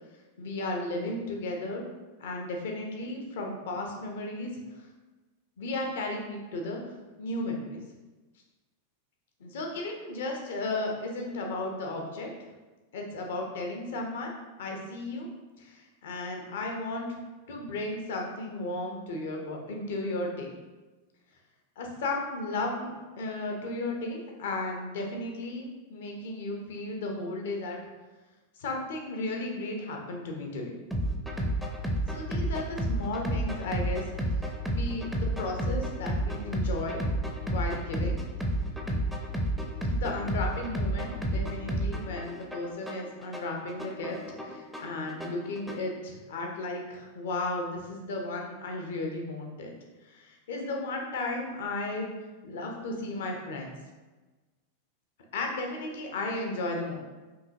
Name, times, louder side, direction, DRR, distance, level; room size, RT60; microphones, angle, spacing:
voice 1, 0.4-1.9 2.2-4.5 5.6-6.8 7.2-7.8 9.4-12.3 12.9-14.3 14.6-15.3 15.6-17.2 17.5-20.5 21.8-27.8 28.6-30.7 32.1-34.0 34.7-37.0 37.4-38.2 39.9-49.7 50.0-52.1 52.4-53.7 55.3-57.0, left 2 dB, 60° left, 1 dB, 0.7 m, -34 dB
sound 1, 30.9-45.9, right 1 dB, ahead, 0.5 m, -31 dB
4.7 x 2.8 x 2.7 m, 1.2 s
figure-of-eight pair, 90°, 0 cm